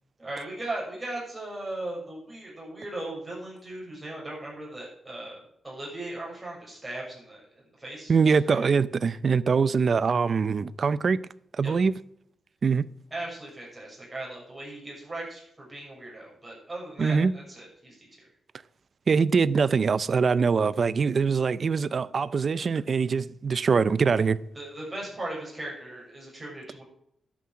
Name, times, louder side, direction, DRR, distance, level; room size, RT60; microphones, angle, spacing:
voice 1, 0.2-7.4 7.8-8.6 11.6-11.7 13.1-18.3 24.5-26.8, right 1 dB, 15° right, 6.6 m, -38 dB
voice 2, 8.1-11.2 11.6-11.9 12.6-12.9 17.0-17.3 19.1-24.4, right 5 dB, 40° right, 0.5 m, -23 dB
11.5 x 8.5 x 7.4 m
wide cardioid pair, 140°, 0 cm